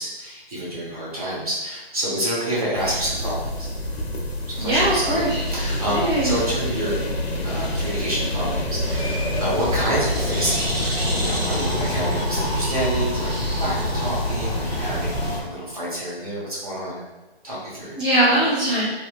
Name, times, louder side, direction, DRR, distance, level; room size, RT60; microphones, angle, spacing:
voice 1, 0.0-3.7 4.5-7.0 7.4-17.0 17.4-18.0, equal, 35° right, -7 dB, 0.8 m, -28 dB
sound 1, 2.8-15.4, left 1 dB, 85° left, 0.7 m, -27 dB
voice 2, 4.6-5.4 5.9-6.3 18.0-18.8, right 1 dB, 10° right, -20 dB, 0.5 m, -20 dB
Bird, 8.8-15.4, equal, 70° right, 1.1 m, -31 dB
3.0 x 2.3 x 2.3 m, 1.1 s
hypercardioid pair, 165°, 31 cm